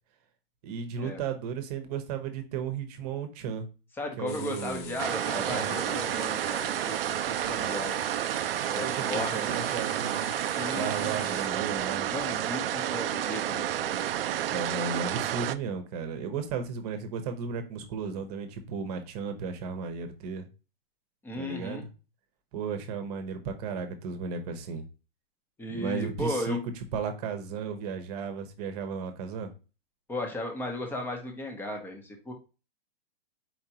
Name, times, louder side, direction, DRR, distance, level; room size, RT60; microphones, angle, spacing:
voice 1, 0.6-3.7 4.2-5.0 5.3-6.0 8.8-10.3 10.7-12.1 14.5-20.5 21.4-21.9 22.5-24.8 25.7-26.6 26.9-29.5, right 5 dB, 40° right, 8 dB, 1.0 m, -34 dB
voice 2, 4.0-8.0 8.7-9.7 10.5-11.2 12.1-14.7 21.2-21.8 25.6-26.6 30.1-32.3, left 1 dB, 5° left, 3 dB, 0.8 m, -36 dB
frying pan frying a steak, 4.3-11.5, left 8 dB, 25° left, 0.4 m, -45 dB
sound 1, 5.0-15.5, right 12 dB, 70° right, 0.5 m, -30 dB
4.6 x 3.7 x 2.9 m, 0.31 s
hypercardioid pair, 140°, 30 cm